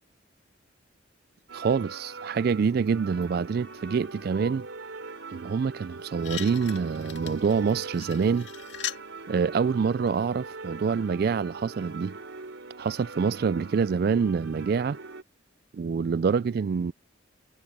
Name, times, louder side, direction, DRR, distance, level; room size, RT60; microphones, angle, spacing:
voice 1, 1.5-4.7 5.3-8.5 9.3-12.2 12.8-15.0 15.7-16.9, right 5 dB, 50° right, 0.3 m, -26 dB
sound 1, 1.5-15.2, right 3 dB, 75° right, 3.5 m, -42 dB
sound 2, 5.8-5.9 6.2-9.1 10.1-10.2, left 12 dB, 65° left, 2.1 m, -39 dB
head